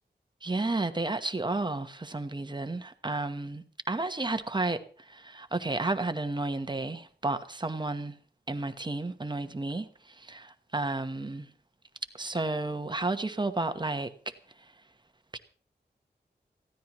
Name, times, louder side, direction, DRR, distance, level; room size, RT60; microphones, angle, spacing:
voice 1, 0.4-8.1 8.5-11.5 12.2-14.1 15.3-15.4, right 2 dB, 25° right, 1.1 m, -32 dB
20.5 x 15.5 x 3.1 m
wide cardioid pair, 100°, 17 cm